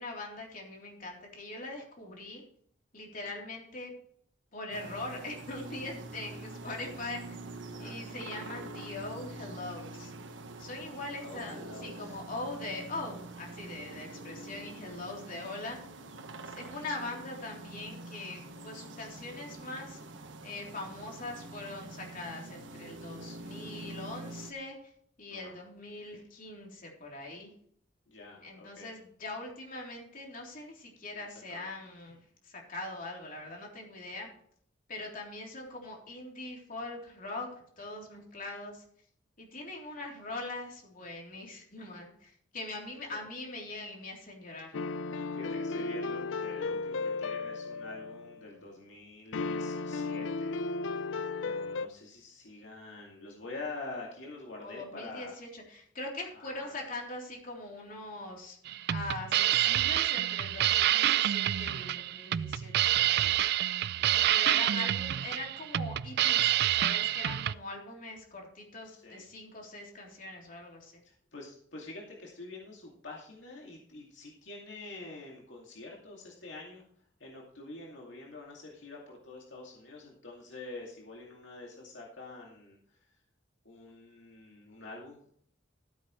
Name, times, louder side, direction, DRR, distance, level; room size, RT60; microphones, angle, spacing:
voice 1, 0.0-2.4 2.9-3.9 4.5-7.4 7.8-10.1 10.6-15.8 16.5-20.0 20.4-24.8 25.2-27.5 28.4-32.2 32.4-34.3 34.9-37.5 37.8-38.8 39.4-44.7 54.6-58.6 58.9-63.4 64.3-71.0, left 2 dB, 45° left, 0 dB, 3.5 m, -42 dB
sound 1, 4.7-24.5, right 2 dB, 85° right, 1.3 m, -45 dB
voice 2, 11.0-12.2 25.3-25.5 28.1-28.9 31.1-31.7 43.1-43.2 45.3-50.5 51.4-55.3 56.3-56.7 64.0-64.3 64.7-64.9 68.8-69.2 71.0-76.8 77.2-82.8 83.6-85.2, left 2 dB, 75° left, -2 dB, 2.4 m, -46 dB
sound 2, 44.7-48.5 49.3-51.9, left 3 dB, 90° left, 0.5 m, -34 dB
sound 3, 58.7-67.5, right 13 dB, 60° right, 0.3 m, -27 dB
14.5 x 8.5 x 3.2 m, 0.62 s
head